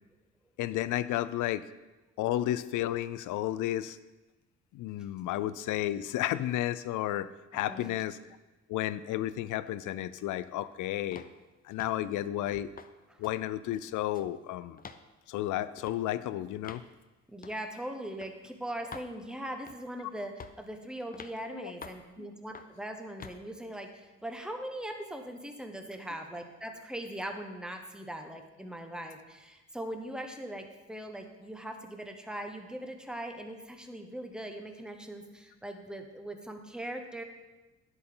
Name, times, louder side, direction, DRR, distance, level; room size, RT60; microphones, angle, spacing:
voice 1, 0.6-1.7 2.2-4.0 4.7-8.2 8.7-11.2 11.6-12.7 13.2-14.8 15.3-16.8 20.0-20.1 21.5-21.7 22.2-22.3, left 13 dB, 85° left, 15 dB, 0.5 m, -32 dB
voice 2, 7.5-7.9 12.1-12.3 13.1-13.2 17.3-37.2, right 1 dB, 5° right, 4 dB, 1.1 m, -40 dB
sound 1, 11.1-11.4 11.8-12.0 12.5-12.9 13.2-13.4 13.7-14.3 14.8-15.0 15.8-16.0 16.6-16.9 17.4-17.6 18.2-18.3 18.9-19.1 19.7-19.9 20.4-20.7 21.1-21.4 21.8-22.1 22.5-22.8 23.2-23.4, left 5 dB, 30° left, 0.6 m, -47 dB
10.0 x 8.1 x 3.8 m, 1.1 s
cardioid pair, 90°, 30 cm